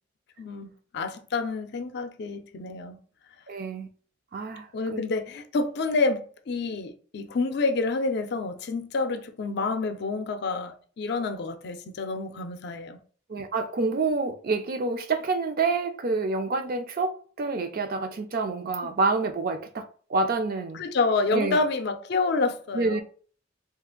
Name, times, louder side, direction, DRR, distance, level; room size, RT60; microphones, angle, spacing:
voice 1, 0.4-3.0 4.7-13.0 20.7-23.0, left 3 dB, 60° left, 0.4 m, -28 dB
voice 2, 3.5-3.9 4.3-5.0 13.3-20.9 21.3-21.6 22.7-23.0, right 3 dB, 50° right, 0.4 m, -28 dB
2.8 x 2.4 x 3.7 m
head